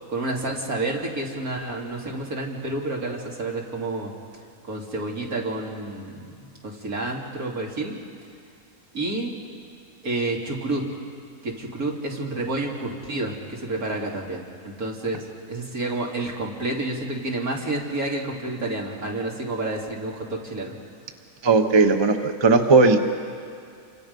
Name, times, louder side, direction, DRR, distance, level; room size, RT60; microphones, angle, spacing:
voice 1, 0.1-4.1 4.6-7.9 8.9-9.3 10.0-10.8 11.4-20.7, right 2 dB, 75° right, -2 dB, 3.3 m, -29 dB
voice 2, 21.4-23.0, right 3 dB, 20° right, 6 dB, 0.9 m, -17 dB
28.5 x 25.0 x 5.4 m, 2.4 s
omnidirectional pair, 1.6 m